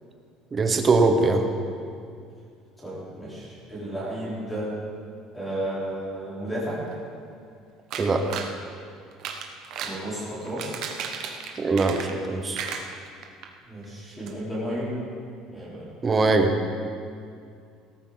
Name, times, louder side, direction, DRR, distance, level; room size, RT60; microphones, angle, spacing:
voice 1, 0.5-1.5 8.0-8.3 11.6-12.6 16.0-16.5, right 3 dB, 20° right, 5 dB, 1.0 m, -21 dB
voice 2, 2.8-4.7 5.3-6.8 9.8-10.8 13.6-15.0 15.5-15.9, right 1 dB, 5° left, -8 dB, 3.9 m, -33 dB
sound 1, 7.9-8.5 9.1-10.0 10.4-12.3 12.5-13.5 13.8-13.9 14.3-14.4, right 7 dB, 50° right, 1.2 m, -34 dB
18.5 x 13.5 x 4.0 m, 2.3 s
cardioid pair, 170°, 0 cm